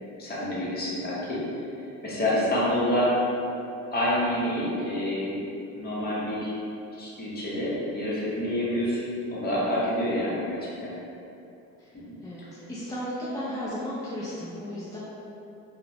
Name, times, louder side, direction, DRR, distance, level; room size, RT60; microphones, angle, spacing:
voice 1, 0.2-1.4 2.0-3.2 3.9-5.4 5.7-6.5 7.0-9.0 9.3-11.0 12.1-12.2, left 1 dB, 30° left, -7 dB, 0.7 m, -27 dB
voice 2, 12.2-15.0, equal, 10° left, -9 dB, 0.3 m, -34 dB
2.8 x 2.1 x 2.7 m, 2.8 s
cardioid pair, 120°, 30 cm